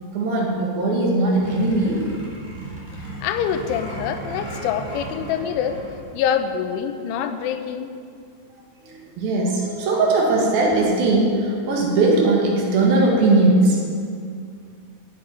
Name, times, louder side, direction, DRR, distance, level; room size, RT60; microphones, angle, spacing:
voice 1, 0.1-2.0 8.8-13.8, right 2 dB, 60° right, -1 dB, 3.2 m, -19 dB
sound 1, 1.3-6.1, right 1 dB, 20° right, 2.3 m, -35 dB
voice 2, 3.2-5.8 6.1-8.0, left 8 dB, 90° left, 8 dB, 3.2 m, -25 dB
9.1 x 8.4 x 9.0 m, 2.3 s
omnidirectional pair, 5.3 m